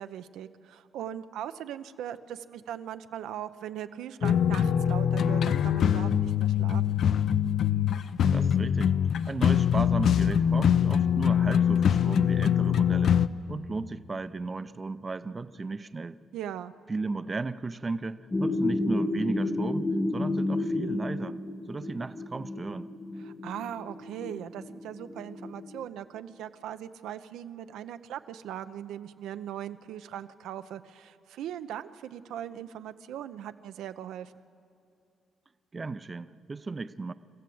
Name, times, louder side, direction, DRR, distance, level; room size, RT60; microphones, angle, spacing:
voice 1, 0.0-7.0 16.3-16.7 23.2-34.5, right 10 dB, 85° right, 11 dB, 0.6 m, -39 dB
sound 1, 4.2-13.3, left 8 dB, 60° left, 0.5 m, -23 dB
voice 2, 8.3-9.0 9.3-13.2 13.5-16.2 16.9-21.4 21.7-22.9 35.7-37.1, right 3 dB, 25° right, 13 dB, 0.5 m, -35 dB
sound 2, 18.3-25.8, left 2 dB, 15° left, 1.1 m, -31 dB
27.0 x 14.5 x 7.8 m, 2.6 s
cardioid pair, 125°, 0 cm